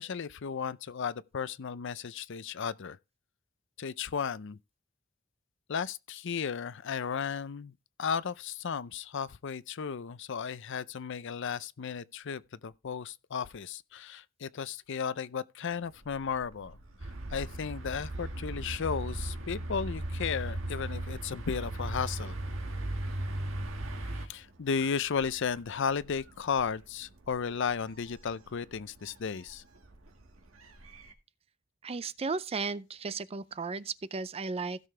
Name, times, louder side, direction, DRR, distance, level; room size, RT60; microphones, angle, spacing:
voice 1, 0.0-3.0 3.8-4.6 5.7-7.7 8.0-16.8 17.3-22.4 24.3-29.6, left 6 dB, 65° left, 0.5 m, -34 dB
Gull seagull, 15.7-31.1, right 1 dB, 90° right, 1.8 m, -50 dB
sound 1, 17.0-24.3, right 1 dB, 70° right, 1.7 m, -36 dB
voice 2, 31.8-34.8, right 4 dB, 30° right, 0.5 m, -35 dB
16.0 x 6.7 x 3.3 m
head